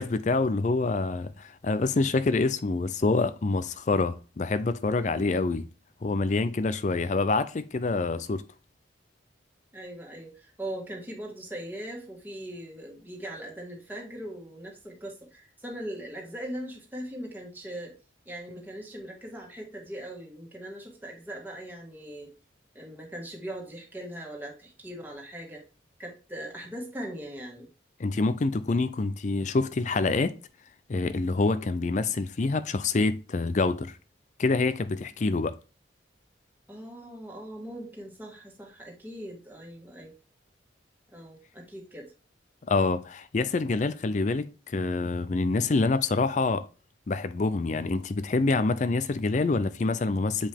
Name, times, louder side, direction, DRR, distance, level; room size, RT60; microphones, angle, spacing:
voice 1, 0.0-5.7 6.0-8.4 28.0-30.3 30.9-34.0 34.4-35.6 42.7-46.7 47.1-50.5, left 3 dB, 40° left, 0.4 m, -26 dB
voice 2, 9.7-17.9 18.2-22.3 22.7-25.6 26.0-27.7 36.7-40.1 41.1-42.1, right 1 dB, 10° right, 1.8 m, -40 dB
7.6 x 5.1 x 3.5 m
head